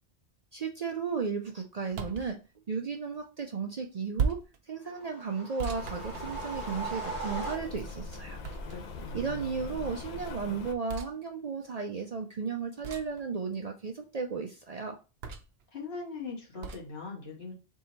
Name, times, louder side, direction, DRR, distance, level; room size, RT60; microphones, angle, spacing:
voice 1, 0.5-2.4 2.7-4.4 4.7-8.4 9.1-15.0, right 5 dB, 50° right, 3 dB, 0.5 m, -34 dB
sound 1, 1.9-2.3 4.2-4.6 5.6-6.8 8.4-9.0 10.9-11.1 12.8-13.2 15.2-15.6 16.6-16.9, right 5 dB, 70° right, 0.8 m, -35 dB
sound 2, 4.9-8.1, right 3 dB, 90° left, 2.1 m, -39 dB
Rain, 5.7-10.7, left 3 dB, 50° left, 0.6 m, -42 dB
voice 2, 8.5-9.6 15.7-17.5, left 3 dB, 70° left, -3 dB, 1.7 m, -41 dB
3.6 x 2.8 x 4.2 m, 0.31 s
omnidirectional pair, 1.1 m